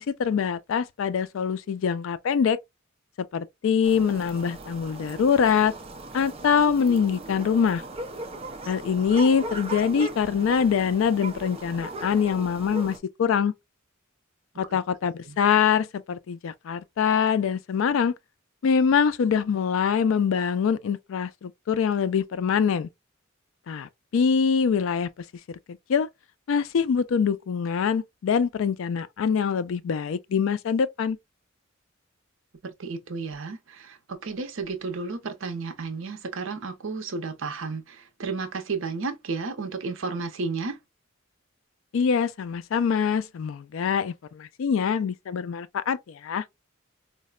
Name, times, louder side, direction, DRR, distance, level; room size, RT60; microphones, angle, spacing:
voice 1, 0.0-2.6 3.3-5.7 6.1-7.8 8.7-13.5 14.6-18.1 18.6-22.9 23.7-25.1 25.7-26.1 26.5-31.2 41.9-46.4, left 6 dB, 70° left, 0.3 m, -24 dB
sound 1, 3.8-13.0, right 2 dB, 30° right, 0.4 m, -38 dB
voice 2, 32.6-40.8, right 4 dB, 65° right, 0.6 m, -33 dB
3.9 x 2.1 x 2.2 m
head